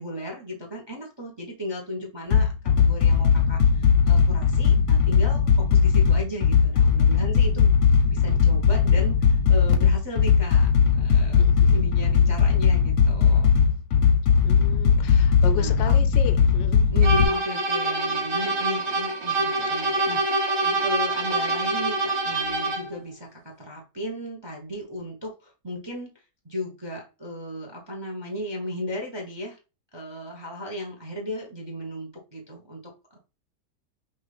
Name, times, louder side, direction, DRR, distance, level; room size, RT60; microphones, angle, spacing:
voice 1, 0.0-7.7 8.1-13.5 15.5-16.0 16.9-29.6 29.9-33.2, equal, 30° right, 0.5 m, -36 dB
sound 1, 2.3-17.2, left 6 dB, 55° left, 0.9 m, -19 dB
voice 2, 11.4-11.8 14.4-16.9 19.7-19.8 20.6-20.8, left 9 dB, 90° left, 1.3 m, -35 dB
sound 2, 17.0-23.0, right 2 dB, 55° right, 1.6 m, -25 dB
5.7 x 2.5 x 3.3 m
omnidirectional pair, 1.9 m